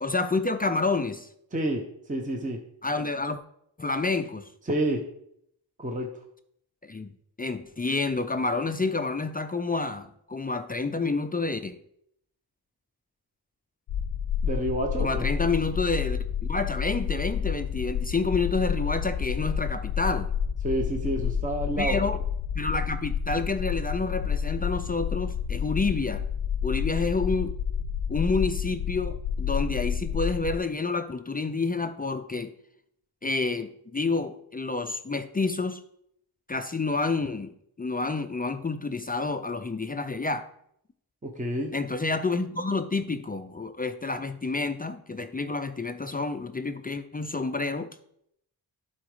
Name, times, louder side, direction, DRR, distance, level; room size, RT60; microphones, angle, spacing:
voice 1, 0.0-1.3 2.8-3.4 3.8-4.5 6.8-11.8 15.0-20.3 21.8-22.2 22.6-26.2 26.6-27.5 28.1-32.5 33.2-35.8 36.5-37.5 37.8-40.5 41.7-47.9, left 3 dB, 25° left, 8 dB, 0.4 m, -29 dB
voice 2, 1.5-1.8 2.1-2.6 4.7-5.0 5.8-6.1 14.4-15.3 20.6-22.0 41.2-41.7, right 1 dB, 20° right, 2 dB, 0.8 m, -28 dB
sound 1, 13.9-30.6, left 7 dB, 80° left, 0.6 m, -29 dB
11.5 x 3.9 x 4.9 m, 0.72 s
wide cardioid pair, 165°, 41 cm